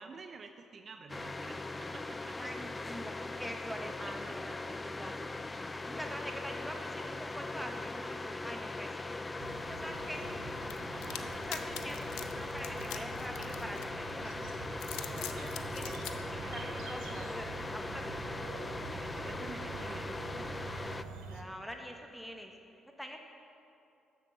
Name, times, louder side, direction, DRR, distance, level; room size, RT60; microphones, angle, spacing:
voice 1, 0.0-2.5 3.7-4.4 10.0-10.4 10.9-11.4 18.6-20.5, right 4 dB, 45° right, 7 dB, 0.5 m, -50 dB
sound 1, 1.1-21.0, left 2 dB, 20° left, 0.4 m, -40 dB
voice 2, 2.4-5.1 5.9-9.1 9.7-10.3 11.3-14.5 15.2-18.2 21.1-22.5 23.0-23.2, equal, ahead, 3 dB, 1.3 m, -45 dB
sound 2, 9.4-21.4, right 4 dB, 90° right, 0.7 m, -46 dB
sound 3, 10.7-14.1 14.7-16.1, left 12 dB, 85° left, 0.5 m, -43 dB
7.5 x 6.7 x 7.5 m, 2.7 s
supercardioid pair, 70°, 0 cm